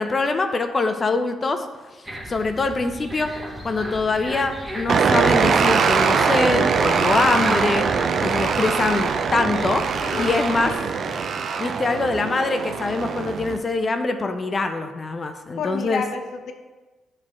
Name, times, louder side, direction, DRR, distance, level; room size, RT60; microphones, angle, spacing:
voice 1, 0.0-1.7 2.3-3.3 3.6-7.9 8.2-9.9 10.2-10.7 11.6-16.0, left 3 dB, 35° left, 7 dB, 0.5 m, -23 dB
sound 1, 2.0-10.7, equal, 5° right, 1.1 m, -34 dB
sound 2, 4.9-13.6, right 6 dB, 60° right, 0.4 m, -22 dB
voice 2, 10.0-11.2 15.6-16.5, left 5 dB, 75° left, 6 dB, 0.7 m, -31 dB
7.3 x 3.2 x 4.8 m, 1.2 s
cardioid pair, 90°, 0 cm